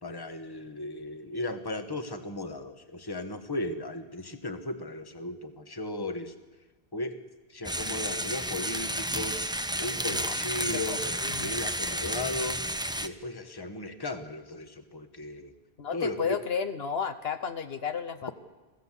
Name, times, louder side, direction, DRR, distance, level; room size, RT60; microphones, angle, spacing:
voice 1, 0.0-6.3 6.9-7.2 7.5-9.4 9.8-11.0 11.4-12.7 13.0-15.5 15.9-16.4, left 2 dB, 20° left, 8 dB, 1.3 m, -36 dB
sound 1, 7.6-13.1, right 1 dB, 5° right, 0.5 m, -32 dB
voice 2, 10.7-11.5 15.8-18.3, left 6 dB, 70° left, 9 dB, 1.2 m, -33 dB
23.0 x 16.0 x 7.4 m, 1.2 s
omnidirectional pair, 1.1 m